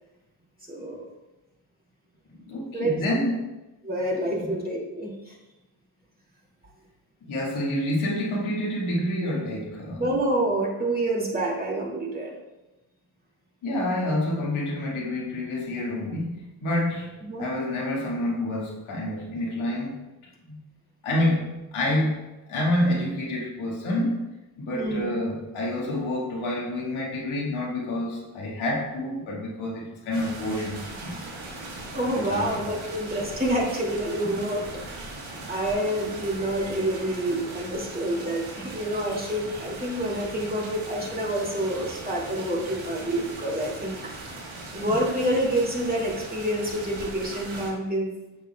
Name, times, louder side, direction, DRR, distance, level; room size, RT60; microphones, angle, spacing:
voice 1, 0.7-1.1 2.7-2.9 3.8-5.4 10.0-12.3 17.2-17.5 24.7-25.0 31.9-34.8 35.5-44.1 44.7-48.1, right 1 dB, 20° right, -3 dB, 2.4 m, -27 dB
voice 2, 2.5-3.4 4.3-4.5 7.3-10.1 13.6-16.3 16.6-19.9 20.5-20.6 21.0-22.2 22.5-24.2 24.6-31.2 32.1-32.6 34.2-34.3, left 1 dB, 75° left, -4 dB, 2.1 m, -28 dB
sound 1, 30.1-47.7, right 2 dB, 85° right, 1.5 m, -39 dB
9.5 x 6.0 x 2.3 m, 1.0 s
supercardioid pair, 60°, 49 cm